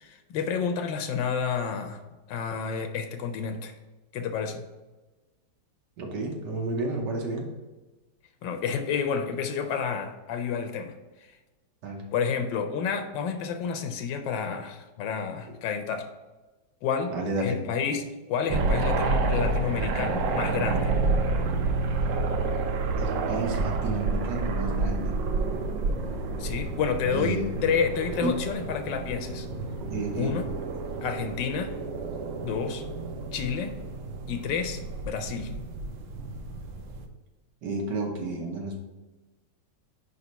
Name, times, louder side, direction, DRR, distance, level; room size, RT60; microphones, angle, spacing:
voice 1, 0.0-2.0 2.3-3.7 4.1-4.7 8.4-10.9 11.2-11.3 12.1-16.1 16.8-17.1 17.4-20.9 26.4-29.5 30.2-30.5 31.0-31.7 32.4-32.8 33.3-33.8 34.3-35.5, left 6 dB, 85° left, 7 dB, 1.4 m, -30 dB
voice 2, 6.0-7.5 11.8-12.1 17.1-17.6 23.0-25.2 27.1-27.7 28.2-28.4 29.8-30.4 37.6-38.8, right 2 dB, 70° right, 2 dB, 1.6 m, -31 dB
sound 1, 18.5-37.1, right 3 dB, 90° right, 1.4 m, -29 dB
5.0 x 4.1 x 5.3 m, 1.1 s
omnidirectional pair, 1.9 m